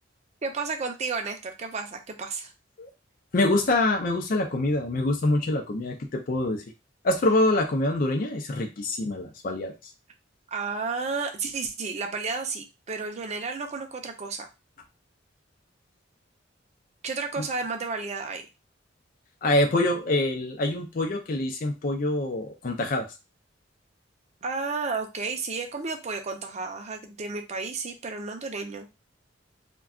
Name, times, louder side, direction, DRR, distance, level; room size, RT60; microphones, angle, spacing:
voice 1, 0.4-2.5 10.5-14.5 17.0-18.5 24.4-28.9, right 4 dB, 35° right, 5 dB, 0.5 m, -32 dB
voice 2, 3.3-6.6 7.0-9.7 17.4-17.5 19.4-23.1, left 2 dB, 45° left, 3 dB, 0.4 m, -25 dB
2.3 x 2.2 x 3.5 m, 0.27 s
head